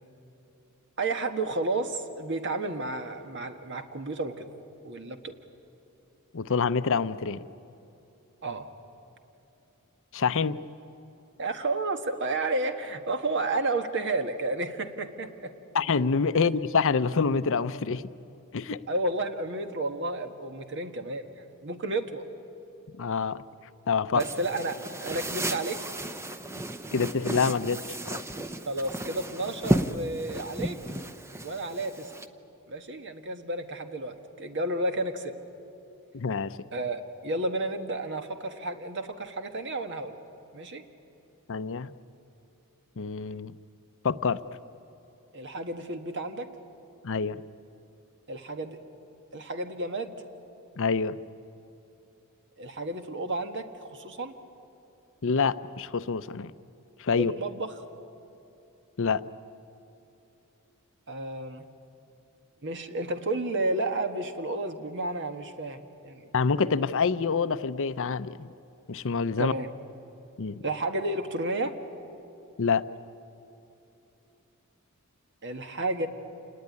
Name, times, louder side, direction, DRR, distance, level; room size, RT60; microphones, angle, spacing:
voice 1, 1.0-4.5 4.8-5.3 8.4-8.7 11.4-15.5 18.9-21.3 21.6-22.2 24.1-25.8 28.6-30.8 31.4-32.1 32.7-35.3 36.7-40.2 40.5-40.8 45.3-46.5 48.3-48.8 49.3-50.2 52.6-54.3 57.2-57.7 61.1-61.6 62.6-66.3 69.4-69.7 70.6-71.7 75.4-76.1, right 2 dB, 55° right, 7 dB, 1.5 m, -31 dB
voice 2, 6.3-7.4 10.1-10.6 15.7-18.1 18.5-18.8 23.0-23.4 23.9-24.2 26.9-28.2 36.1-36.6 41.5-41.9 43.0-43.5 44.0-44.4 47.0-47.4 50.8-51.2 55.2-56.5 57.0-57.3 59.0-59.2 66.3-68.5 68.9-69.5 70.4-70.6 72.6-72.8, left 5 dB, 65° left, 14 dB, 0.6 m, -26 dB
sound 1, 24.2-32.3, right 1 dB, 10° right, 0.8 m, -33 dB
28.0 x 19.5 x 9.6 m, 2.9 s
head